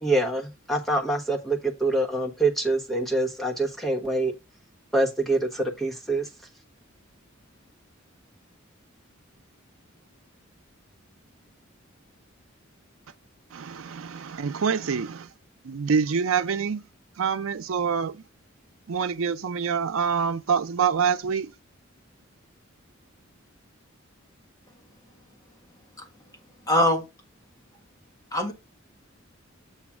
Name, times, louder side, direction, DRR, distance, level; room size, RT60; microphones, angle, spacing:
voice 1, 0.0-4.3 4.9-6.3, right 2 dB, ahead, 1.1 m, -25 dB
voice 2, 13.5-15.3 15.6-16.8 17.2-18.2 18.9-21.5, right 6 dB, 75° right, 0.5 m, -26 dB
voice 3, 26.7-27.0 28.3-28.5, left 1 dB, 15° left, 1.6 m, -21 dB
7.2 x 3.1 x 6.0 m
head